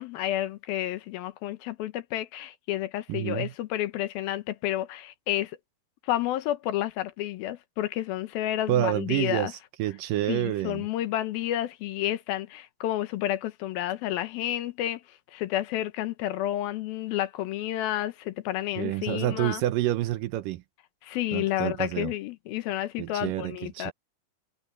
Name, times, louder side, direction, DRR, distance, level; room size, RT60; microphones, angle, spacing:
voice 1, 0.0-5.6 6.0-9.5 10.3-15.0 15.3-19.6 21.0-23.9, left 13 dB, 80° left, 2.8 m, -30 dB
voice 2, 3.1-3.5 8.7-10.9 18.8-20.6 21.3-22.1 23.0-23.9, right 14 dB, 75° right, 2.2 m, -28 dB
omnidirectional pair, 4.3 m